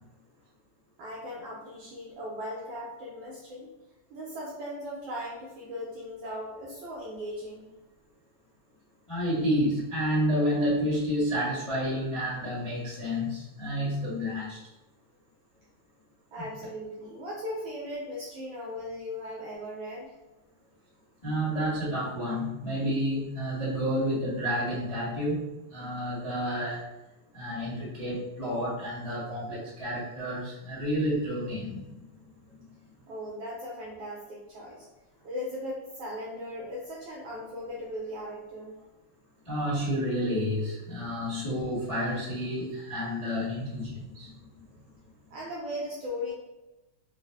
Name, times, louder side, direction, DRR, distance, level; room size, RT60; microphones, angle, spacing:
voice 1, 1.0-3.7 4.1-7.7 16.3-20.1 33.1-34.9 35.2-38.7 45.3-46.3, left 1 dB, 75° right, -4 dB, 1.5 m, -38 dB
voice 2, 9.1-14.6 21.2-25.4 25.7-26.8 27.3-31.9 39.4-44.3, equal, 35° left, -9 dB, 0.5 m, -30 dB
4.8 x 2.1 x 3.4 m, 1.0 s
omnidirectional pair, 3.4 m